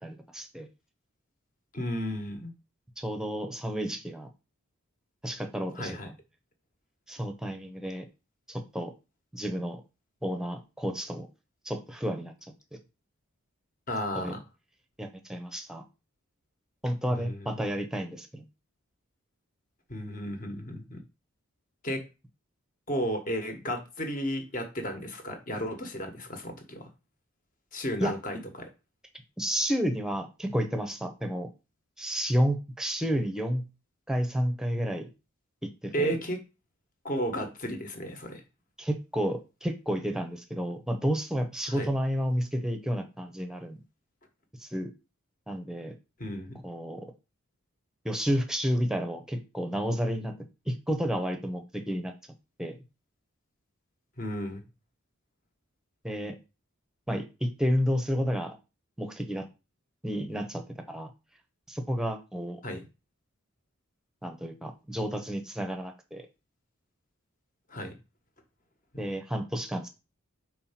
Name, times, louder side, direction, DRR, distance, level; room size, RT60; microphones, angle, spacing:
voice 1, 0.0-0.7 3.0-4.3 5.2-6.2 7.1-8.1 8.5-8.9 9.3-9.8 10.2-11.3 11.6-12.3 14.1-14.4 15.0-15.8 16.8-18.5 28.0-28.1 29.4-31.5 32.0-33.6 34.1-35.1 35.6-36.2 38.8-43.8 44.6-44.9 45.5-46.0 46.6-47.1 48.0-50.3 50.7-52.1 52.6-52.7 56.0-56.4 57.1-58.6 59.0-59.5 60.0-61.1 61.7-62.6 64.2-66.3 69.0-69.9, equal, 5° right, 6 dB, 0.8 m, -31 dB
voice 2, 1.7-2.5 5.8-6.1 13.9-14.4 17.1-17.5 19.9-21.0 21.8-22.0 22.9-26.9 27.7-28.7 35.9-36.4 37.0-38.4 41.7-41.9 46.2-46.6 54.2-54.6 62.6-62.8 67.7-67.9 68.9-69.1, equal, 40° left, 5 dB, 1.4 m, -33 dB
4.7 x 4.4 x 5.8 m, 0.28 s
head